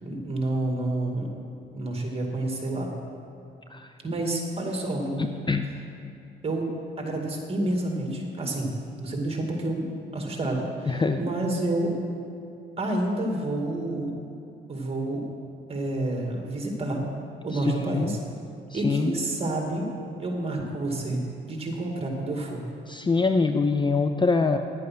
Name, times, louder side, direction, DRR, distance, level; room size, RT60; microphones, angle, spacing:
voice 1, 0.0-1.3 1.7-2.9 4.0-5.2 6.4-6.7 7.0-8.7 9.0-11.9 12.8-14.1 14.7-15.2 15.7-17.0 17.4-18.2 18.7-19.9 20.2-22.6, right 1 dB, 30° right, 1 dB, 2.2 m, -29 dB
voice 2, 5.2-5.6 10.9-11.2 17.5-18.2 18.7-19.1 22.9-24.6, left 4 dB, 25° left, 7 dB, 0.5 m, -24 dB
10.5 x 8.5 x 6.1 m, 2.6 s
cardioid pair, 90°, 20 cm